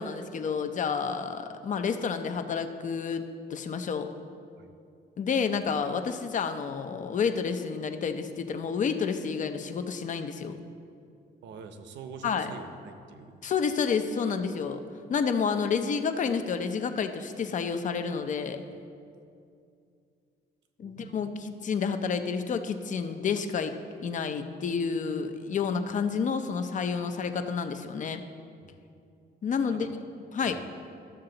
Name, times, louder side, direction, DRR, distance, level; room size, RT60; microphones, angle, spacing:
voice 1, 0.0-4.1 5.2-10.6 12.2-12.5 13.4-14.8 15.1-18.6 20.8-28.2 29.4-29.9 30.3-30.6, left 6 dB, 45° left, 8 dB, 0.6 m, -30 dB
voice 2, 11.4-13.4 20.8-21.4 28.6-28.7 29.7-29.9 30.4-30.7, right 5 dB, 85° right, 7 dB, 0.8 m, -45 dB
13.5 x 6.7 x 3.9 m, 2.5 s
cardioid pair, 140°, 18 cm